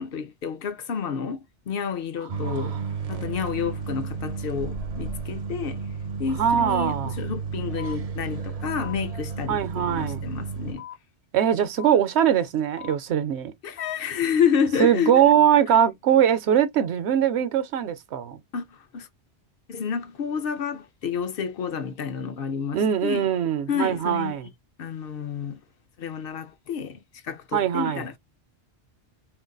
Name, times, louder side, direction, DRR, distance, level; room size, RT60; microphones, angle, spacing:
voice 1, 0.0-2.7 3.1-5.8 6.2-10.9 13.6-15.2 18.5-19.1 19.7-23.3 23.7-24.3 24.8-25.6 26.0-28.2, left 7 dB, 65° left, 0.7 m, -29 dB
sound 1, 2.3-10.7, right 5 dB, 45° right, 0.5 m, -32 dB
voice 2, 2.4-2.8 6.3-7.2 9.5-10.2 11.3-13.5 14.8-18.4 22.7-24.5 27.5-28.1, right 9 dB, 80° right, 0.9 m, -22 dB
sound 2, 6.8-6.9 7.8-7.9 8.8-8.9 9.8-9.9 10.8-10.9 11.8-11.9 12.8-12.9 13.8-13.9 14.8-14.9, left 10 dB, 35° left, 1.1 m, -40 dB
3.8 x 2.5 x 2.2 m
omnidirectional pair, 1.1 m